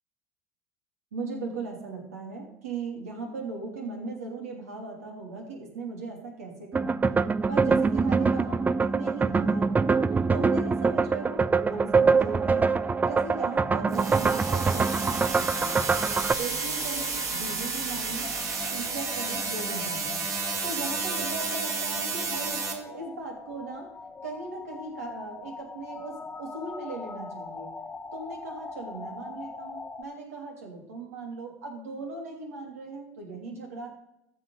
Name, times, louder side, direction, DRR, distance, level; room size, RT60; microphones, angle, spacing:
voice 1, 1.1-7.0 7.5-9.7 10.3-12.8 13.0-15.9 16.4-18.3 18.7-20.2 20.6-23.9 24.2-27.7 28.1-33.9, right 3 dB, 80° right, 1 dB, 2.9 m, -38 dB
sound 1, 6.7-16.3, right 4 dB, 20° right, 0.5 m, -24 dB
sound 2, 13.9-22.7, right 4 dB, 35° right, 2.4 m, -31 dB
sound 3, 18.2-30.0, left 4 dB, 20° left, 1.4 m, -42 dB
14.5 x 5.3 x 5.7 m, 0.83 s
hypercardioid pair, 70°, 8 cm